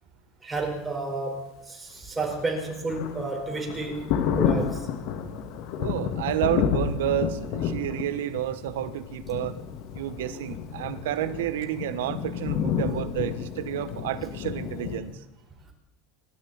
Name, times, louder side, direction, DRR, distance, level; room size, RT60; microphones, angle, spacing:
voice 1, 0.4-4.9 12.5-13.0, right 3 dB, 15° right, 1 dB, 4.4 m, -32 dB
Thunder, 2.2-15.0, left 7 dB, 60° left, 2.0 m, -30 dB
voice 2, 5.8-9.5 9.9-15.2, right 12 dB, 85° right, 13 dB, 1.2 m, -30 dB
26.0 x 12.5 x 4.2 m, 0.93 s
supercardioid pair, 125°, 0 cm